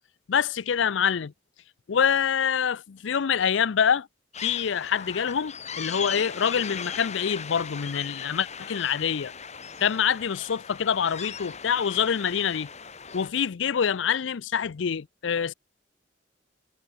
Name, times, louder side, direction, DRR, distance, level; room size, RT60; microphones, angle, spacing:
voice 1, 0.3-1.3 1.9-4.1 4.4-9.3 9.8-12.7 13.1-15.5, left 7 dB, 70° left, 0.5 m, -25 dB
sound 1, 4.3-13.3, left 6 dB, 35° left, 3.2 m, -38 dB
head